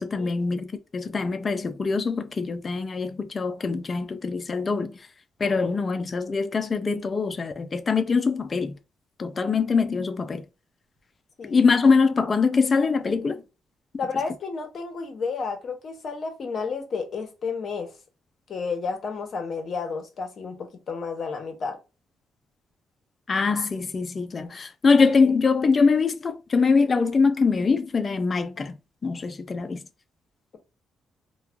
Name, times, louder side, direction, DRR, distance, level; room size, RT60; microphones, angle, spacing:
voice 1, 0.0-5.1 5.4-8.8 9.2-10.4 11.5-13.4 23.3-28.8 29.0-29.8, left 4 dB, 35° left, 0.4 m, -23 dB
voice 2, 14.0-17.9 18.5-21.8, left 5 dB, 50° left, 0.9 m, -31 dB
3.0 x 2.2 x 2.4 m
cardioid pair, 90°, 0 cm